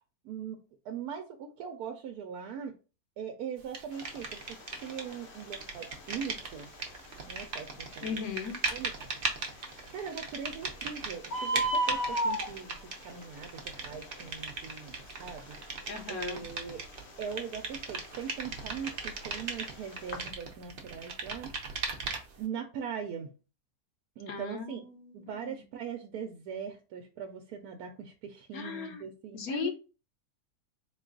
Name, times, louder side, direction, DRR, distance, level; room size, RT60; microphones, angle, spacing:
voice 1, 0.2-0.6 0.8-2.7 3.2-6.7 7.3-8.2 8.7-8.9 9.2-9.6 9.9-16.8 17.2-21.5 22.4-23.3 24.2-24.8 25.1-29.7, right 7 dB, 90° right, 4 dB, 1.1 m, -41 dB
sound 1, 3.7-5.1 5.4-22.4, right 4 dB, 45° right, 0.7 m, -38 dB
Bird, 3.9-20.3, right 1 dB, 55° left, 0.8 m, -38 dB
voice 2, 8.0-8.6 15.9-16.5 24.3-25.6 28.5-29.7, left 6 dB, 75° left, 6 dB, 1.2 m, -38 dB
3.9 x 2.3 x 3.8 m, 0.32 s
omnidirectional pair, 1.6 m